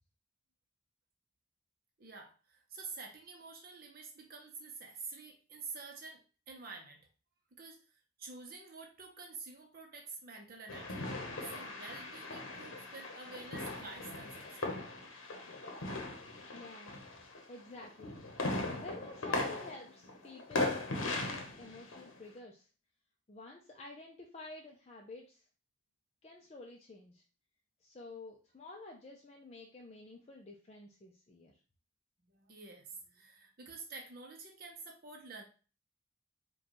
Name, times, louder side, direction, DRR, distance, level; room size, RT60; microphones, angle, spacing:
voice 1, 2.0-7.1 7.5-11.1 11.4-14.8 32.2-35.4, right 4 dB, 45° right, 1 dB, 0.6 m, -49 dB
sound 1, 10.7-17.5 17.8-22.2, left 2 dB, 85° left, 0.8 m, -39 dB
voice 2, 16.5-17.1 17.5-18.2 18.7-22.7 23.3-25.5 26.2-27.2 27.8-31.6, left 2 dB, 30° left, 0 dB, 0.4 m, -51 dB
5.0 x 2.3 x 2.9 m, 0.36 s
head